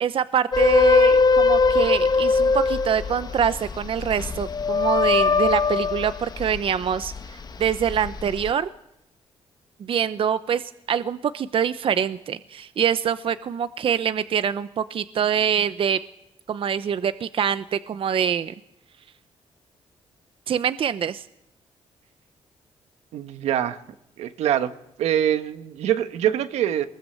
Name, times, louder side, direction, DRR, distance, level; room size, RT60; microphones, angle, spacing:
voice 1, 0.0-8.7 9.8-16.0 16.5-18.5 20.5-21.3, right 8 dB, 55° right, 13 dB, 0.8 m, -25 dB
sound 1, 0.5-7.2 7.6-8.5, left 4 dB, 40° left, 1.4 m, -21 dB
voice 2, 23.1-23.8 24.2-24.7 25.0-26.9, right 10 dB, 90° right, 10 dB, 1.3 m, -24 dB
22.5 x 20.5 x 7.7 m, 0.81 s
cardioid pair, 85°, 11 cm